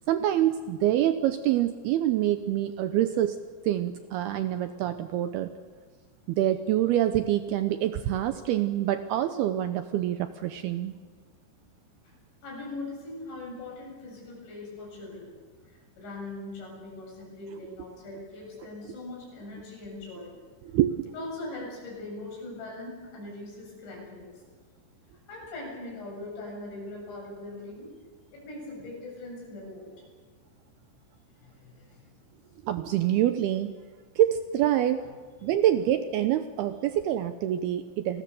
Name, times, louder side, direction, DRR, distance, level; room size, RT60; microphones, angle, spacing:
voice 1, 0.1-3.4 3.6-5.5 6.3-11.0 20.6-21.1 32.7-33.7 34.2-35.1 35.4-38.2, right 12 dB, 80° right, 9 dB, 2.4 m, -26 dB
voice 2, 12.4-15.3 15.7-20.3 21.1-24.3 25.3-27.9 28.3-29.9 31.4-32.0 35.0-35.1 35.4-35.5, left 2 dB, 75° left, -1 dB, 9.9 m, -41 dB
28.5 x 20.5 x 7.0 m, 1.5 s
omnidirectional pair, 5.3 m